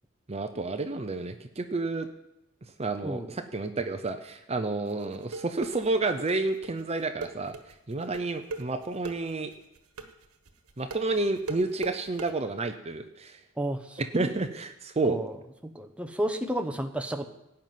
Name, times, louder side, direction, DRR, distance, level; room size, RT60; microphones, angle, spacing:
voice 1, 0.3-2.1 2.8-7.6 7.9-9.5 10.8-13.4 14.0-15.2, right 3 dB, 30° right, 8 dB, 0.7 m, -30 dB
sound 1, 4.9-12.3, right 3 dB, 80° right, 1.5 m, -39 dB
voice 2, 13.6-14.3 15.0-15.4 15.6-17.2, right 1 dB, 5° right, 6 dB, 0.9 m, -32 dB
17.0 x 5.8 x 9.4 m, 0.91 s
head